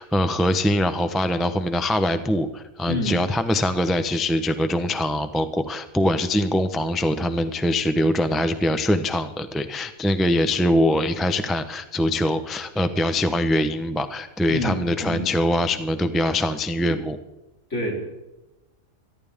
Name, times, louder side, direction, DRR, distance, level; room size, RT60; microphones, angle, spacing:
voice 1, 0.0-17.2, left 1 dB, ahead, 9 dB, 0.6 m, -23 dB
voice 2, 2.9-3.2 14.5-15.3 17.7-18.0, left 1 dB, 55° left, -2 dB, 4.3 m, -27 dB
26.0 x 11.5 x 3.6 m, 1.0 s
omnidirectional pair, 1.4 m